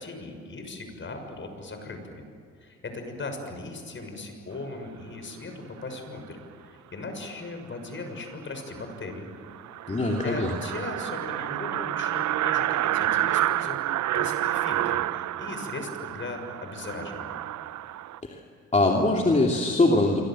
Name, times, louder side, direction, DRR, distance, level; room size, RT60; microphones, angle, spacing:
voice 1, 0.0-2.2 2.6-5.5 5.8-9.3 10.2-17.4, left 3 dB, 40° left, 6 dB, 6.6 m, -38 dB
sound 1, 8.3-8.4 8.7-8.8 9.1-9.2 9.5-18.2, right 13 dB, 70° right, 0.7 m, -29 dB
voice 2, 9.9-10.5 18.2-18.4 18.7-20.2, left 2 dB, 25° left, 0 dB, 2.9 m, -22 dB
27.0 x 24.5 x 7.7 m, 2.3 s
cardioid pair, 90°, 30 cm